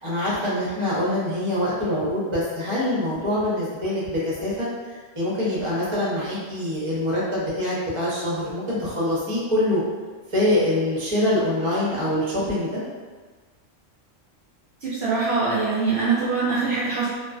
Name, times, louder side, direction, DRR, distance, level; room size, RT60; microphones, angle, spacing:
voice 1, 0.0-9.8 10.3-12.8, left 1 dB, 30° right, -8 dB, 0.7 m, -24 dB
voice 2, 14.8-17.1, right 4 dB, 65° right, -9 dB, 0.8 m, -23 dB
2.4 x 2.3 x 2.3 m, 1.4 s
omnidirectional pair, 1.3 m